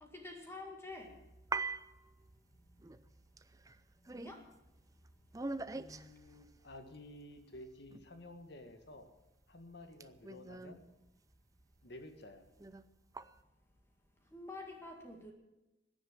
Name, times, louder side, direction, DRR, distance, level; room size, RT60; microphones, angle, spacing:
voice 1, 0.0-1.1 4.1-4.4 14.3-15.3, left 2 dB, 15° left, 2 dB, 2.0 m, -48 dB
sound 1, 0.9-8.5 8.9-12.0 12.3-13.4, right 3 dB, 20° right, 0.5 m, -45 dB
voice 2, 5.7-9.1 9.5-10.8 11.8-12.4, left 1 dB, 60° left, 7 dB, 1.9 m, -52 dB
16.5 x 10.5 x 7.4 m, 0.98 s
head